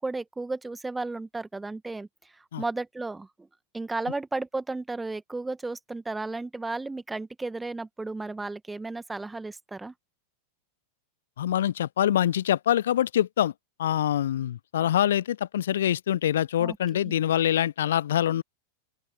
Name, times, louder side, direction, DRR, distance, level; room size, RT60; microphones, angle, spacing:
voice 1, 0.0-2.1 2.3-3.5 3.7-9.9 16.6-16.8 17.0-17.1, right 3 dB, 10° right, 1.7 m, -34 dB
voice 2, 11.4-13.5 13.8-18.4, left 11 dB, 60° left, 0.8 m, -25 dB
open air
figure-of-eight pair, 90°, 0 cm